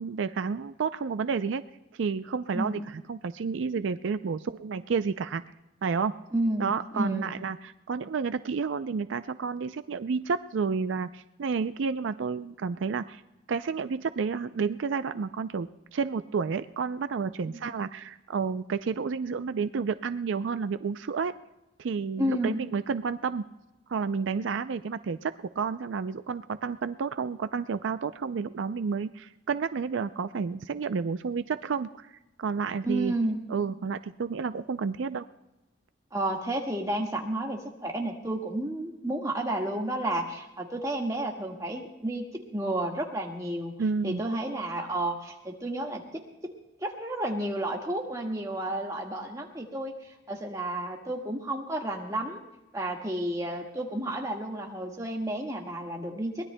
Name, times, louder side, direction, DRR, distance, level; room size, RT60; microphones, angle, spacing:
voice 1, 0.0-1.6 1.9-5.4 5.8-6.1 6.6-13.2 13.5-21.3 21.8-23.5 23.9-33.1 33.5-35.3 43.8-44.2, right 5 dB, 75° right, 12 dB, 0.4 m, -30 dB
voice 2, 6.3-7.3 22.2-22.6 32.8-33.4 36.1-43.8 44.0-46.0 46.8-52.4 52.7-56.5, right 1 dB, 15° right, 1 dB, 1.6 m, -31 dB
23.0 x 19.5 x 2.2 m, 0.98 s
head